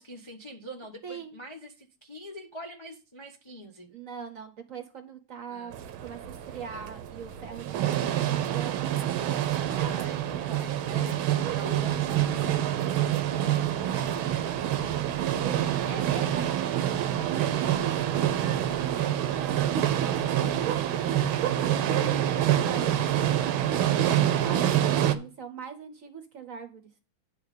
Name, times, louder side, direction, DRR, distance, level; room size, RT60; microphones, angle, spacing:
voice 1, 0.0-3.9 5.5-5.8 6.7-6.9 9.7-14.8 15.4-16.3 21.5-22.2, equal, 45° left, 1 dB, 0.3 m, -44 dB
voice 2, 1.0-1.3 3.9-9.4 15.4-20.2 22.5-22.9 23.1-26.9, right 6 dB, 50° right, 8 dB, 1.1 m, -42 dB
sound 1, 5.7-25.1, right 11 dB, 85° right, 1.5 m, -27 dB
9.6 x 3.5 x 6.5 m, 0.35 s
omnidirectional pair, 2.2 m